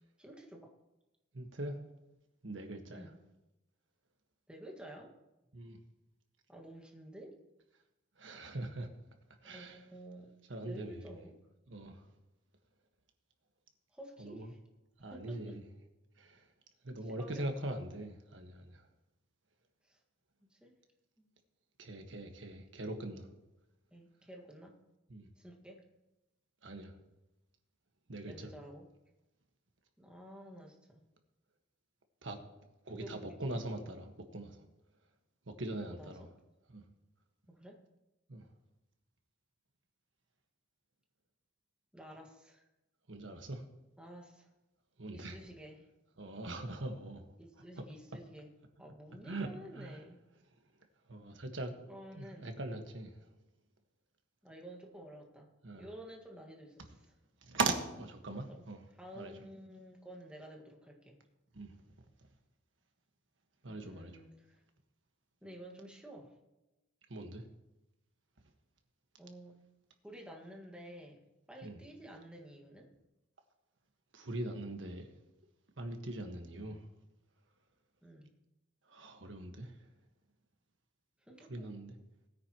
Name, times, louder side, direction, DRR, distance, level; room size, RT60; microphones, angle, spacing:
voice 1, 0.2-0.7 2.9-3.1 4.5-5.1 6.5-7.4 9.4-10.3 10.7-11.3 13.9-14.6 15.1-15.6 17.1-17.5 19.8-20.0 20.5-20.7 21.2-21.3 23.9-24.7 25.4-25.8 28.2-28.9 30.0-31.0 32.9-33.4 36.0-36.3 37.5-37.8 41.9-42.6 44.0-44.5 45.1-45.9 47.4-48.5 48.8-50.2 51.9-52.5 54.4-55.5 55.8-56.9 58.5-58.6 59.0-61.2 63.6-64.6 65.4-66.3 69.2-69.6 70.0-71.2 71.5-72.9 76.5-76.8 78.0-78.3 81.3-81.7, right 1 dB, 5° right, 1 dB, 1.8 m, -51 dB
voice 2, 1.3-1.8 2.4-3.1 5.5-5.8 8.2-8.9 9.4-9.8 10.5-11.0 11.7-12.1 14.2-14.5 15.0-15.6 16.2-16.5 16.8-18.9 21.8-23.3 25.1-25.3 26.6-26.9 28.1-28.5 32.2-32.4 32.8-34.6 35.5-36.3 36.7-36.8 38.3-38.5 43.1-43.6 45.0-45.4 46.2-47.2 49.2-49.5 49.7-50.0 51.1-51.7 52.1-53.2 55.6-55.9 57.4-58.8 59.1-59.3 61.5-61.8 63.6-64.1 67.1-67.4 71.6-71.8 74.1-75.1 75.8-76.9 78.9-79.9 81.5-81.9, right 2 dB, 75° right, 5 dB, 1.5 m, -41 dB
19.5 x 9.4 x 3.0 m, 0.99 s
head